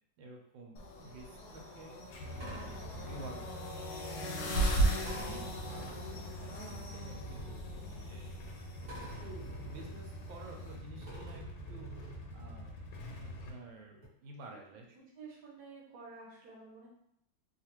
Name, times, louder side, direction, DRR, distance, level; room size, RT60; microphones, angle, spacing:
voice 1, 0.2-3.9 4.4-4.6 5.0-8.4 9.2-11.9 12.3-13.0 13.2-14.8, right 2 dB, 80° right, 1 dB, 1.4 m, -51 dB
sound 1, 0.8-10.8, right 2 dB, 70° left, 1.0 m, -37 dB
Motorcycle / Engine starting / Idling, 2.1-13.5, left 1 dB, 85° left, 1.4 m, -46 dB
sound 2, 2.3-3.7 5.0-6.5 7.2-8.4 8.8-10.7 11.0-12.7 13.7-13.8 14.0-14.1, right 2 dB, 35° right, 1.1 m, -49 dB
voice 2, 2.3-2.7 14.9-16.9, right 4 dB, 60° right, -3 dB, 1.2 m, -52 dB
3.2 x 2.4 x 2.8 m, 0.74 s
omnidirectional pair, 2.1 m